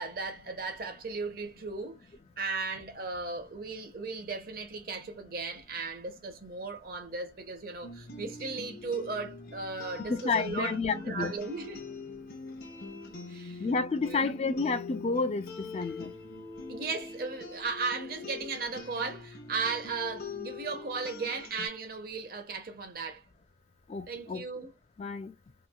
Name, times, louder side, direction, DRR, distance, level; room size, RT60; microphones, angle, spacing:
voice 1, 0.0-2.1 2.4-11.8 13.3-13.6 14.0-14.2 16.7-23.2 24.1-24.7, right 4 dB, 55° right, 0.7 m, -36 dB
sound 1, 7.8-21.7, left 4 dB, 55° left, 0.8 m, -44 dB
voice 2, 10.1-11.3 13.6-15.5 15.7-16.1 23.9-24.4 25.0-25.3, left 4 dB, 35° left, 0.3 m, -30 dB
3.0 x 2.3 x 2.3 m
head